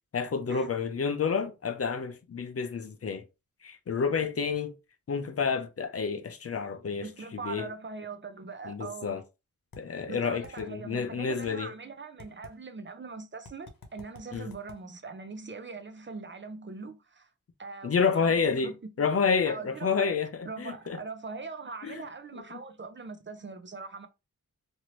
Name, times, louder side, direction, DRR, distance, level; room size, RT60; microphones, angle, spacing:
voice 1, 0.1-3.2 3.6-4.7 5.1-7.7 8.7-9.2 9.8-11.7 14.3-14.5 17.8-21.0 21.8-22.0, left 5 dB, 45° left, 0.5 m, -29 dB
voice 2, 7.0-9.2 10.1-17.3 17.6-18.7 19.5-20.1 20.5-24.1, right 4 dB, 35° right, 0.5 m, -41 dB
sound 1, 9.7-9.8 10.4-10.7 11.4-11.5 12.2-12.5 13.5-14.8, left 4 dB, 85° left, 0.8 m, -48 dB
2.9 x 2.6 x 3.0 m
wide cardioid pair, 80°, 33 cm